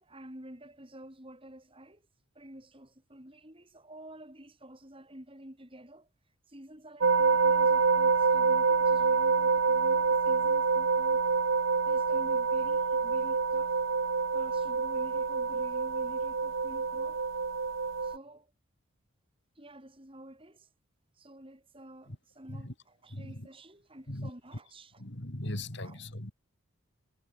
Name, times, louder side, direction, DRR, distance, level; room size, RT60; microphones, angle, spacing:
voice 1, 0.0-2.0 2.3-6.1 6.5-11.3 11.8-13.8 14.3-17.2 18.0-18.5 19.6-20.7 21.1-25.0 25.8-26.0, right 1 dB, 25° right, 3.9 m, -50 dB
sound 1, 7.0-18.2, right 5 dB, 65° right, 0.8 m, -27 dB
voice 2, 23.1-23.5 24.1-24.3 25.0-26.3, left 1 dB, 55° left, 3.5 m, -39 dB
head